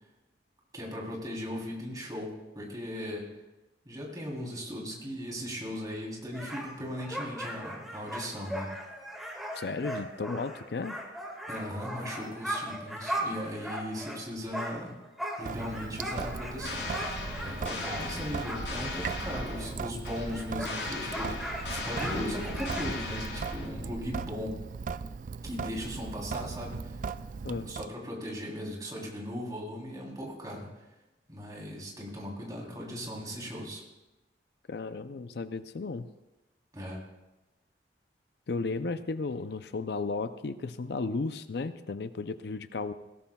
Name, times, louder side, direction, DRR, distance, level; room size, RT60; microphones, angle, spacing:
voice 1, 0.7-3.3 3.8-8.7 11.5-15.0 15.4-16.9 17.4-24.6 25.4-26.9 27.6-30.7 31.3-33.8 36.7-37.0, equal, 20° right, -2 dB, 3.4 m, -38 dB
sound 1, 6.3-14.2 14.5-19.8 20.0-22.9, equal, ahead, 1.8 m, -38 dB
voice 2, 9.5-11.0 27.4-27.7 34.7-36.1 38.5-42.9, left 3 dB, 65° left, 11 dB, 0.5 m, -34 dB
Sink (filling or washing) / Drip, 15.4-27.9, right 5 dB, 45° right, 0.3 m, -38 dB
sound 2, 16.2-24.0, left 2 dB, 80° left, 6.2 m, -38 dB
20.0 x 17.0 x 2.3 m, 1.0 s
head